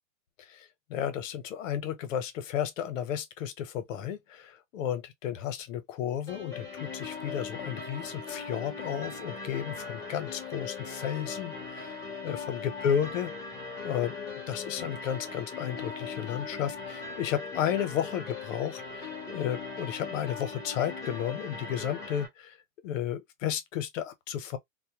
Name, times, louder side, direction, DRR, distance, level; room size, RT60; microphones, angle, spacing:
voice 1, 0.4-12.0 12.2-13.3 13.8-14.1 14.5-22.5 22.8-24.6, left 9 dB, 75° left, 0.7 m, -33 dB
sound 1, 6.3-22.3, left 4 dB, 10° left, 0.4 m, -39 dB
2.1 x 2.1 x 2.7 m
supercardioid pair, 155°, 39 cm